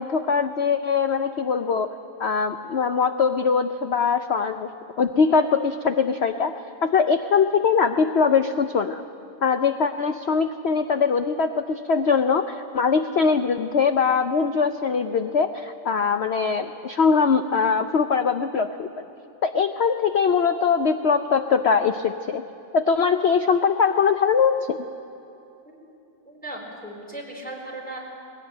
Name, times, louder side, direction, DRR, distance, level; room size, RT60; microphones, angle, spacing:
voice 1, 0.0-1.9 2.2-4.7 5.0-6.5 6.8-9.0 9.4-19.1 19.4-22.4 22.7-24.8, left 5 dB, 85° left, 8 dB, 0.5 m, -22 dB
voice 2, 26.3-28.0, right 1 dB, 5° left, -3 dB, 4.1 m, -37 dB
19.5 x 17.0 x 8.8 m, 2.8 s
omnidirectional pair, 1.9 m